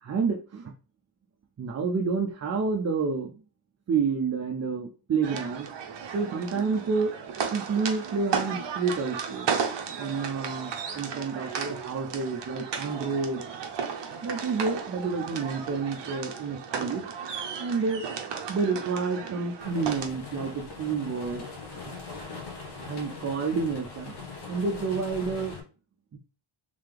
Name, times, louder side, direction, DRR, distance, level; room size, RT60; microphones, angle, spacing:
voice 1, 0.0-0.7 1.6-3.3 3.9-5.7 6.1-7.1 7.5-9.5 10.0-13.4 14.2-17.0 17.6-18.0 18.5-21.4 21.7-21.8 22.8-24.2 24.5-25.6 26.1-26.2, right 4 dB, 35° right, 2 dB, 0.4 m, -29 dB
sound 1, 5.2-20.1, right 6 dB, 60° right, 0.8 m, -34 dB
sound 2, 19.6-25.6, left 4 dB, 55° left, 1.1 m, -41 dB
3.7 x 3.3 x 3.3 m, 0.36 s
wide cardioid pair, 180°, 49 cm